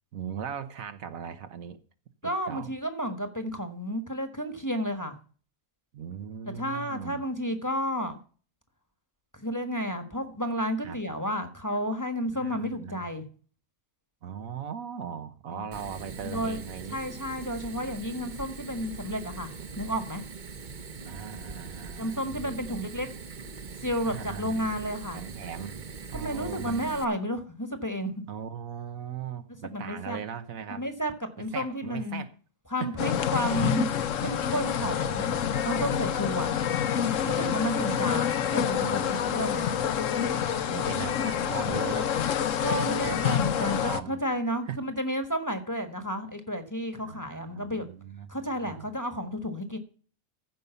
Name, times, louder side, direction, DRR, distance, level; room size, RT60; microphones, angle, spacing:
voice 1, 0.1-1.8 2.2-2.7 5.9-7.2 10.8-11.0 12.3-13.0 14.2-17.0 21.0-22.8 24.1-24.7 25.1-25.8 26.1-27.0 28.3-30.8 31.4-32.3 32.8-32.9 34.7-35.5 37.4-38.2 38.6-39.8 40.6-42.1 42.8-44.2 44.7-44.8 47.0-48.9, right 8 dB, 80° right, 1.4 m, -39 dB
voice 2, 2.2-5.1 6.5-8.2 9.3-13.2 15.5-15.6 16.2-16.6 16.9-19.5 19.8-20.2 22.0-23.1 23.8-25.2 26.1-28.2 29.7-30.2 30.7-32.2 32.7-33.9 34.2-35.4 35.6-36.5 37.3-39.7 42.6-47.9 48.3-49.8, equal, 15° left, 1.4 m, -31 dB
Fire, 15.7-27.0, right 4 dB, 40° right, 1.0 m, -42 dB
sound 1, 33.0-44.0, left 8 dB, 65° left, 1.1 m, -27 dB
15.0 x 5.4 x 6.9 m
omnidirectional pair, 1.5 m